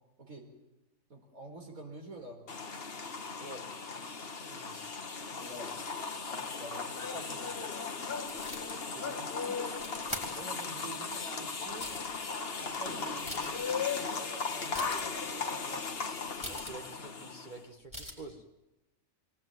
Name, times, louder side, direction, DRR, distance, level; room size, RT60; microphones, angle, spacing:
voice 1, 0.2-0.5 1.1-2.4 4.4-4.8 5.4-5.8 6.3-7.6 9.1-9.8 10.3-11.9 12.6-15.9, right 2 dB, 75° right, 2 dB, 4.6 m, -48 dB
sound 1, 2.5-17.6, left 5 dB, 45° left, 1.4 m, -37 dB
voice 2, 3.3-3.8 8.9-9.3 16.5-18.4, right 2 dB, 35° right, 3 dB, 1.6 m, -48 dB
sound 2, 8.3-8.6 9.8-10.2 11.1-11.2 11.7-12.2 12.7-12.8 13.1-13.6 14.7-15.1 16.4-16.7 17.9-18.1, equal, 5° right, 4.1 m, -42 dB
23.5 x 18.5 x 9.3 m, 0.96 s
omnidirectional pair, 1.5 m